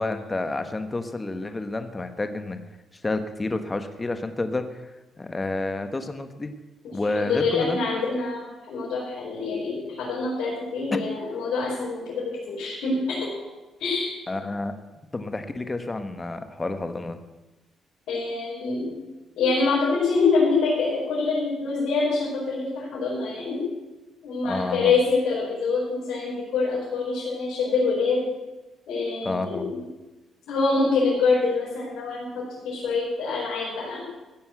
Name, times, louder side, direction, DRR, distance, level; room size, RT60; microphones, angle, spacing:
voice 1, 0.0-2.6 3.0-4.8 5.2-6.5 6.9-7.8 14.3-14.8 15.1-17.2 24.4-24.9 29.2-29.7, left 2 dB, 20° left, 8 dB, 1.2 m, -29 dB
voice 2, 6.8-13.3 13.8-14.1 18.1-18.9 19.4-23.6 24.2-28.3 28.9-29.8 30.5-34.0, left 4 dB, 75° left, -8 dB, 5.2 m, -25 dB
14.5 x 6.9 x 7.8 m, 1.1 s
cardioid pair, 90°, 0 cm